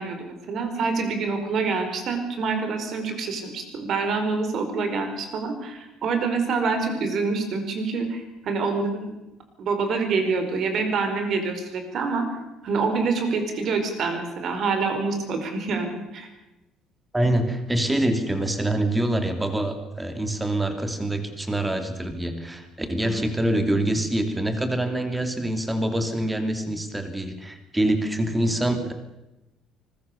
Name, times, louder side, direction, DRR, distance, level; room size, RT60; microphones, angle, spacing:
voice 1, 0.0-9.1 9.6-12.3 12.6-16.3 23.0-23.1, right 4 dB, 40° right, 7 dB, 4.8 m, -26 dB
voice 2, 17.1-28.9, right 1 dB, 5° right, 7 dB, 2.7 m, -25 dB
25.0 x 21.0 x 6.9 m, 0.98 s
cardioid pair, 170°, 0 cm